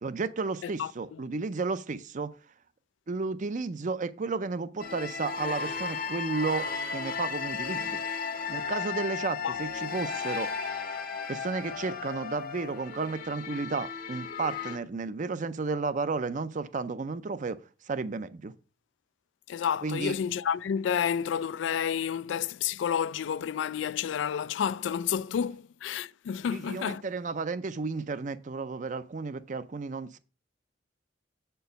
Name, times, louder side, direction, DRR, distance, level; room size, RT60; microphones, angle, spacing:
voice 1, 0.0-2.3 3.1-8.0 8.5-10.5 11.3-17.6 17.9-18.5 19.8-20.2 26.5-30.2, right 4 dB, 45° right, 0.5 m, -33 dB
voice 2, 0.6-1.2 9.4-9.6 19.5-27.0, left 8 dB, 90° left, 0.3 m, -30 dB
sound 1, 4.8-14.8, left 5 dB, 50° left, 0.8 m, -35 dB
7.8 x 4.5 x 5.1 m
head